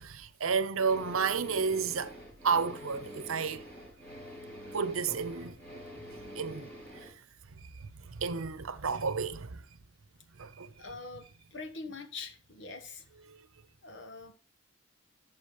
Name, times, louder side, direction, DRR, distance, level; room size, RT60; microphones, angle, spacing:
voice 1, 0.0-2.2 2.4-3.7 4.7-5.6 6.4-6.7 7.6-9.6 10.4-10.7 13.3-13.4, right 5 dB, 85° right, 0.8 m, -31 dB
sound 1, 0.8-7.1, equal, 10° left, 5.2 m, -46 dB
voice 2, 10.8-13.0 13.8-14.3, left 4 dB, 60° left, 1.3 m, -44 dB
13.0 x 6.2 x 3.1 m
head